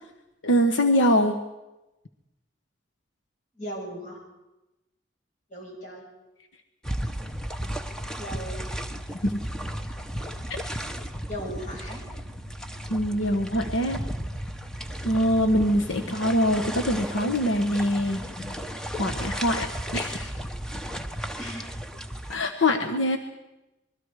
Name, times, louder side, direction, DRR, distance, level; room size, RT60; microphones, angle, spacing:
voice 1, 0.4-1.4 9.2-9.3 12.9-14.0 15.0-18.2 19.0-20.3 22.3-23.2, equal, 85° left, 5 dB, 1.3 m, -23 dB
voice 2, 3.6-4.2 5.5-6.0 8.1-8.7 11.3-12.1 21.4-21.7 22.7-23.2, equal, 40° left, -1 dB, 6.6 m, -38 dB
sound 1, 6.8-22.3, equal, 5° left, 0.9 m, -34 dB
25.5 x 21.5 x 4.9 m, 0.99 s
head